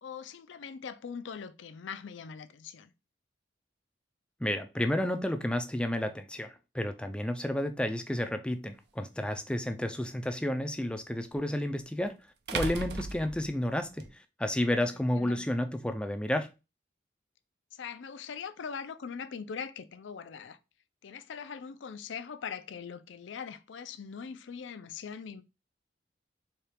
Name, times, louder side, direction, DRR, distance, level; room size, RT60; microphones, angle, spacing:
voice 1, 0.0-2.9 14.8-15.4 17.7-20.6 21.0-25.4, left 6 dB, 75° left, 0.4 m, -41 dB
voice 2, 4.4-12.2 12.5-14.1 14.4-16.5, left 1 dB, 5° left, 0.4 m, -31 dB
sound 1, 8.6-8.7 11.3-11.4 12.5-14.1, right 3 dB, 60° right, 0.5 m, -36 dB
4.3 x 2.3 x 3.3 m
head